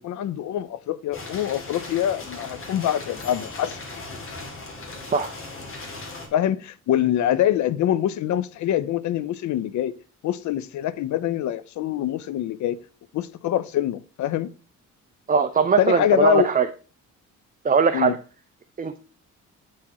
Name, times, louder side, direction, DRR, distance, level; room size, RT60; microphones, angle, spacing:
voice 1, 0.0-3.8 6.3-9.9 10.2-12.8 13.1-14.5 15.8-16.5 17.9-18.1, left 11 dB, 70° left, 0.7 m, -24 dB
sound 1, 1.1-6.3, left 2 dB, 45° left, 2.7 m, -37 dB
voice 2, 15.3-16.7 17.6-18.1 18.8-19.0, right 6 dB, 30° right, 0.7 m, -20 dB
8.7 x 4.8 x 4.2 m
cardioid pair, 90°, 30 cm